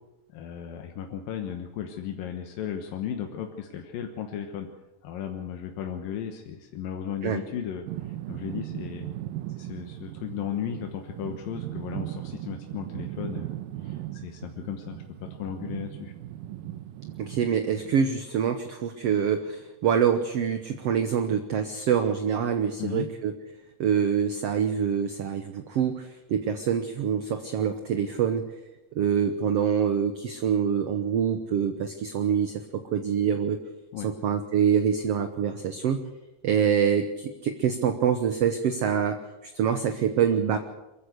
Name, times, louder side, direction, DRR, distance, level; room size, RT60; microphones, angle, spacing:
voice 1, 0.3-4.7 5.0-7.9 8.3-9.1 9.6-13.5 13.8-16.1 22.8-23.1 33.9-34.1, left 9 dB, 80° left, 4 dB, 3.0 m, -35 dB
sound 1, 7.9-17.9, right 14 dB, 90° right, 2.6 m, -38 dB
voice 2, 17.2-23.3 23.8-28.5 29.0-33.6 34.0-36.0 36.4-40.6, right 7 dB, 65° right, 8 dB, 1.6 m, -25 dB
23.5 x 15.0 x 8.2 m, 1.0 s
omnidirectional pair, 3.9 m